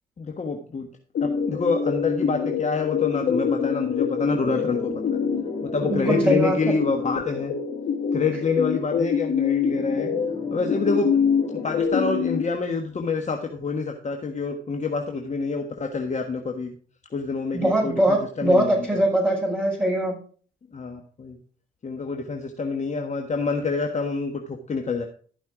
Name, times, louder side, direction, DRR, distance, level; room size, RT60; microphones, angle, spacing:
voice 1, 0.2-0.9 1.2-4.9 5.6-7.5 8.1-10.1 10.5-11.2 11.6-16.8 17.1-19.0 20.7-21.4 21.8-25.1, left 4 dB, 35° left, 4 dB, 1.4 m, -27 dB
sound 1, 1.1-12.4, left 6 dB, 60° left, 1.7 m, -25 dB
sound 2, 4.2-8.5 8.9-9.0 9.7-11.8, left 2 dB, 20° left, 4.0 m, -38 dB
voice 2, 5.8-6.6 17.5-20.1, right 1 dB, 10° right, -7 dB, 5.8 m, -22 dB
14.0 x 5.6 x 4.9 m, 0.43 s
cardioid pair, 90°, 20 cm